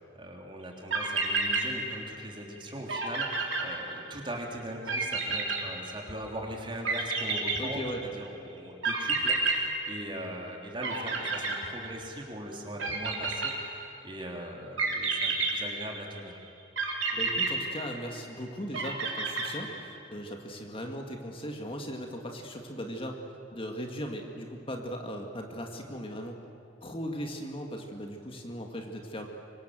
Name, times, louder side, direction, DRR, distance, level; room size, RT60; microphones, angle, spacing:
voice 1, 0.0-16.4, right 1 dB, 25° right, 1 dB, 3.5 m, -40 dB
sound 1, 0.6-0.7 0.9-2.3 2.6-2.7 2.9-4.3 4.9-6.3 6.8-8.2 8.8-10.5 10.8-12.2 12.8-14.0 14.8-16.2 16.8-18.3 18.7-20.0, right 4 dB, 85° right, 4.0 m, -30 dB
voice 2, 7.6-8.0 17.1-23.2 23.5-26.4 26.8-29.3, equal, 30° left, 3 dB, 2.0 m, -38 dB
25.0 x 25.0 x 7.7 m, 2.6 s
head